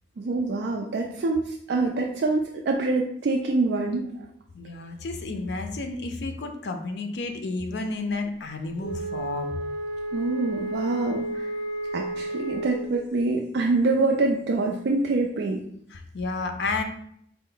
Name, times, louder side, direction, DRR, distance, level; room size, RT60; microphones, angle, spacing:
voice 1, 0.2-4.1 10.1-11.5 11.9-15.6, right 3 dB, 70° right, 0 dB, 0.4 m, -25 dB
voice 2, 4.5-9.5 15.9-16.8, left 3 dB, 75° left, 5 dB, 0.5 m, -31 dB
Wind instrument woodwind instrument, 8.8-12.9, right 1 dB, 5° right, 1.1 m, -32 dB
4.3 x 2.0 x 3.8 m, 0.69 s
head